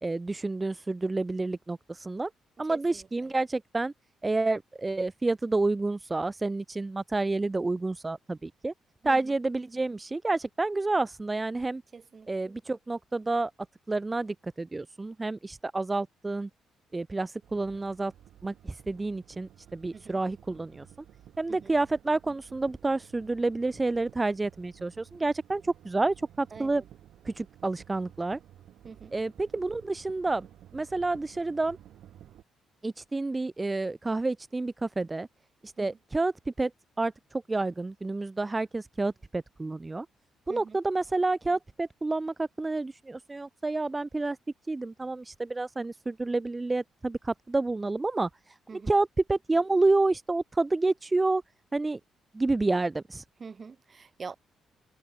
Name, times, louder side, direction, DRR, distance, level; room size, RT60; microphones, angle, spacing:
voice 1, 0.0-2.3 2.6-3.9 4.2-8.7 9.0-11.8 12.3-13.5 13.9-16.5 16.9-18.1 18.4-20.9 21.4-26.8 27.2-28.4 29.1-30.5 30.7-31.8 32.8-35.3 35.6-36.7 37.0-40.1 40.5-44.4 44.7-51.4 51.7-52.0 52.3-53.2, right 2 dB, 20° right, 0.4 m, -29 dB
voice 2, 2.7-3.1 9.0-9.2 11.9-12.3 19.9-20.2 21.5-21.7 26.5-26.8 28.8-29.1 35.8-36.0 40.5-40.8 48.7-48.9 53.4-54.4, right 5 dB, 35° right, 1.4 m, -44 dB
sound 1, 17.4-32.4, right 11 dB, 75° right, 3.1 m, -54 dB
cardioid pair, 90°, 0 cm